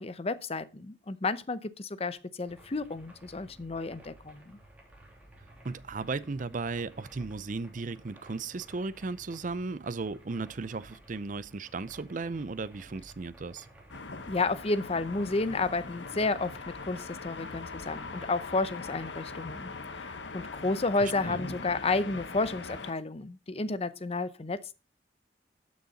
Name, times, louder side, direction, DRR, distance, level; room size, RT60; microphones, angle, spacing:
voice 1, 0.0-4.6 14.3-24.8, left 3 dB, 35° left, 0.7 m, -31 dB
sound 1, 2.4-19.8, right 1 dB, 10° right, 3.0 m, -55 dB
voice 2, 5.6-13.7 21.0-21.4, right 3 dB, 45° right, 0.5 m, -36 dB
sound 2, 13.9-22.9, left 3 dB, 85° left, 1.2 m, -41 dB
13.0 x 6.4 x 4.0 m
head